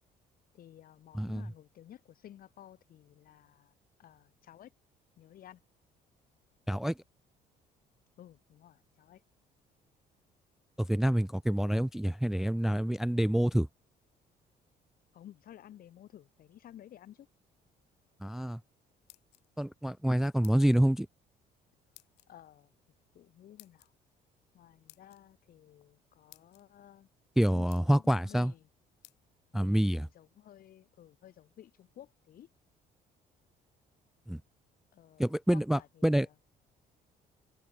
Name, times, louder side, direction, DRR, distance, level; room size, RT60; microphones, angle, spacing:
voice 1, 0.5-3.7 4.0-4.7 5.2-5.6 8.2-9.2 15.1-17.3 22.3-22.7 23.1-23.9 24.5-27.1 27.4-28.7 29.5-32.5 34.9-36.3, left 11 dB, 60° left, 2.6 m, -54 dB
voice 2, 10.8-13.7 18.2-18.6 19.6-21.1 27.4-28.5 29.5-30.1 34.3-34.4 35.2-36.3, right 1 dB, ahead, 0.3 m, -27 dB
sound 1, 18.9-19.7 20.4-20.8 21.9-22.3 23.6-23.9 24.9-25.2 25.9-26.0 26.3-26.6 27.2-27.3 27.7-28.1 29.0-29.2, left 19 dB, 85° left, 1.2 m, -57 dB
open air
cardioid pair, 110°, 17 cm